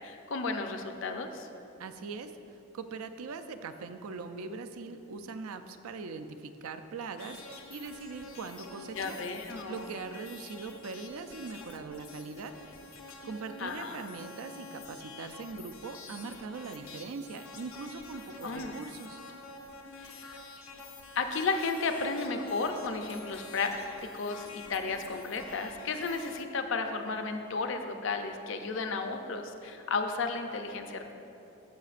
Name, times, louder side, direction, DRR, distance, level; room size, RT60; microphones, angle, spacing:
voice 1, 0.0-1.5 8.9-10.0 13.6-14.0 18.4-18.8 20.0-20.4 21.2-23.8 24.1-31.1, left 4 dB, 60° left, 6 dB, 0.5 m, -33 dB
voice 2, 1.8-2.3 2.7-9.2 9.7-12.5 13.2-19.2, right 4 dB, 80° right, 9 dB, 0.4 m, -41 dB
sound 1, 7.2-26.4, left 3 dB, 80° left, 0.9 m, -48 dB
13.5 x 5.8 x 2.5 m, 3.0 s
head